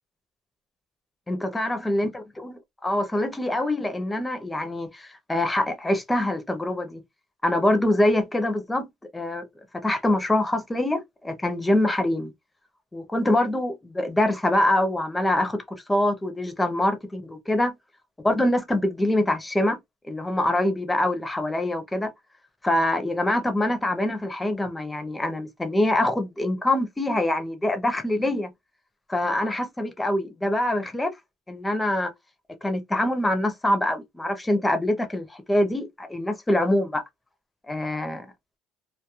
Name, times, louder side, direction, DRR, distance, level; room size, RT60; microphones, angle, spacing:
voice 1, 1.3-2.1 2.4-2.5 2.8-7.0 7.4-8.9 9.1-9.5 9.8-12.3 12.9-17.8 18.2-19.8 20.1-22.1 22.6-28.5 29.1-31.1 31.5-32.1 32.6-37.0 37.7-38.3, left 1 dB, 10° left, 0.5 m, -24 dB
2.3 x 2.1 x 2.9 m
cardioid pair, 160°, 0 cm